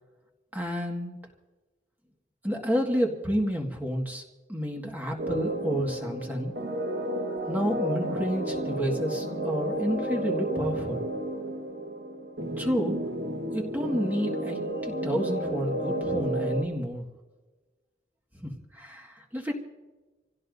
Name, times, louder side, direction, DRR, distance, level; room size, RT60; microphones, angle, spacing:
voice 1, 0.5-1.2 2.4-4.2 4.5-6.5 7.5-11.1 12.6-13.0 13.5-17.1 18.3-19.5, equal, 10° right, 0 dB, 1.8 m, -30 dB
sound 1, 5.2-16.6, right 1 dB, 65° right, 1.7 m, -32 dB
27.5 x 16.5 x 2.7 m, 1.2 s
head